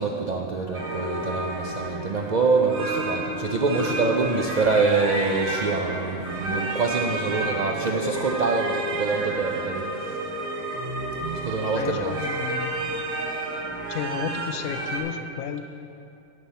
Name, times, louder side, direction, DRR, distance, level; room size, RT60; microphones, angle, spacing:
voice 1, 0.0-9.9 11.2-12.2, right 4 dB, 60° right, 0 dB, 0.4 m, -25 dB
sound 1, 0.7-15.0, right 2 dB, 85° right, 1.6 m, -31 dB
voice 2, 11.7-12.7 13.9-15.6, left 7 dB, 80° left, 9 dB, 1.0 m, -32 dB
9.3 x 9.1 x 4.2 m, 2.6 s
omnidirectional pair, 1.4 m